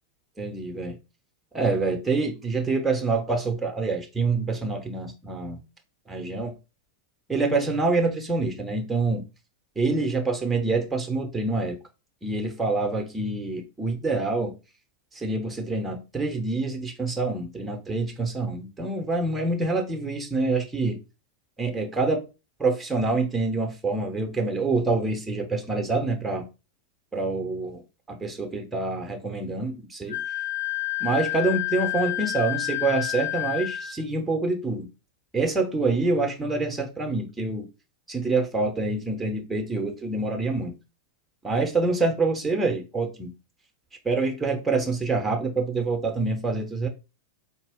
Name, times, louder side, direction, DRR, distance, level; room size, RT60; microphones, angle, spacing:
voice 1, 0.4-1.0 1.5-5.6 6.1-6.5 7.3-9.3 9.8-11.8 12.2-14.5 15.1-21.0 21.6-22.2 22.6-26.5 27.1-27.8 28.1-30.2 31.0-34.9 35.3-37.7 38.1-40.8 41.4-43.3 44.0-46.9, right 3 dB, 10° right, 0.8 m, -26 dB
Wind instrument woodwind instrument, 30.1-34.0, left 17 dB, 80° left, 1.7 m, -29 dB
4.3 x 2.3 x 3.5 m
figure-of-eight pair, 90°, 0 cm